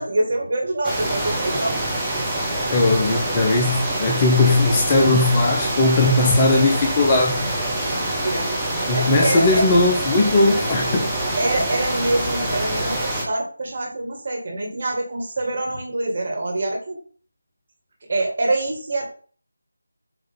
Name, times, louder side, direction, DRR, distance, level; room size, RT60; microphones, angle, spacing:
voice 1, 0.0-1.8 4.7-4.8 8.2-8.5 8.9-9.6 11.4-17.0 18.1-19.0, right 2 dB, 40° right, 0 dB, 2.2 m, -25 dB
sound 1, 0.8-13.3, right 1 dB, ahead, 1.2 m, -25 dB
voice 2, 2.7-7.4 8.9-11.1, left 2 dB, 20° left, 1 dB, 0.8 m, -18 dB
7.7 x 3.3 x 3.8 m, 0.43 s
figure-of-eight pair, 160°, 0 cm